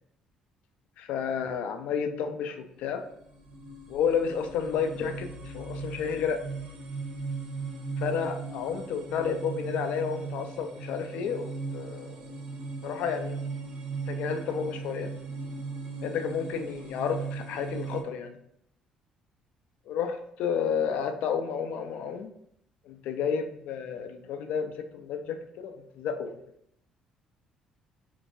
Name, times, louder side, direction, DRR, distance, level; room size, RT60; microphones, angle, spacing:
voice 1, 1.0-3.0 3.9-6.4 8.0-12.3 12.8-13.4 14.1-15.1 16.0-18.4 19.9-22.3 22.9-26.4, left 7 dB, 75° left, 8 dB, 0.4 m, -31 dB
sound 1, 2.8-18.0, right 4 dB, 60° right, 0.7 m, -38 dB
3.7 x 2.4 x 2.5 m, 0.73 s
supercardioid pair, 75°, 2 cm